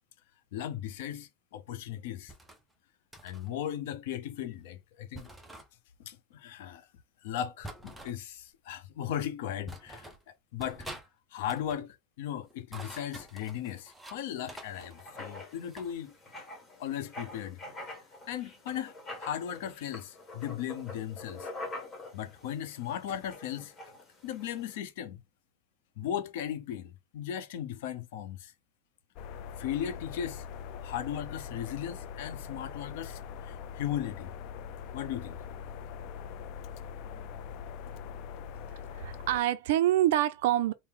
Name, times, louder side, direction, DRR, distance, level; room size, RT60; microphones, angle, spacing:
voice 1, 0.5-2.3 3.2-5.3 6.0-6.9 7.2-10.1 10.5-10.9 11.3-16.1 16.8-17.6 18.3-18.9 19.2-21.5 22.1-23.7 24.2-25.2 26.0-28.5 29.6-30.5 30.8-34.3 34.9-35.4, left 10 dB, 60° left, 0.7 m, -37 dB
sound 1, 2.3-2.6 3.1-3.5 5.1-5.7 7.6-8.2 9.0-9.1 9.7-10.2 10.6-11.1 11.4-11.8 12.5-14.2 14.5-15.9, right 1 dB, 5° right, 0.6 m, -47 dB
Writing, 14.4-24.8, left 2 dB, 15° left, 1.1 m, -46 dB
sound 2, 29.2-39.4, left 7 dB, 45° left, 0.3 m, -42 dB
voice 2, 38.9-40.7, right 13 dB, 65° right, 0.4 m, -26 dB
4.6 x 2.0 x 3.6 m
supercardioid pair, 165°, 0 cm